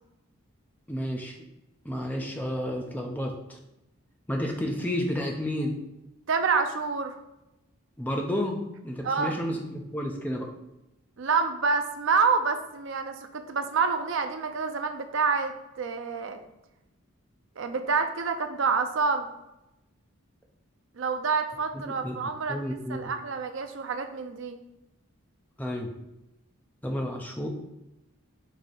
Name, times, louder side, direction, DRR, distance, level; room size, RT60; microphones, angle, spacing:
voice 1, 0.9-1.4 1.8-3.6 4.3-5.8 8.0-10.5 21.7-22.2 22.5-23.1 25.6-25.9 26.8-27.5, equal, 10° left, 2 dB, 0.5 m, -31 dB
voice 2, 6.3-7.2 9.0-9.3 11.2-16.4 17.6-19.3 21.0-24.6, right 5 dB, 60° right, 7 dB, 0.5 m, -27 dB
4.8 x 2.7 x 4.0 m, 0.92 s
head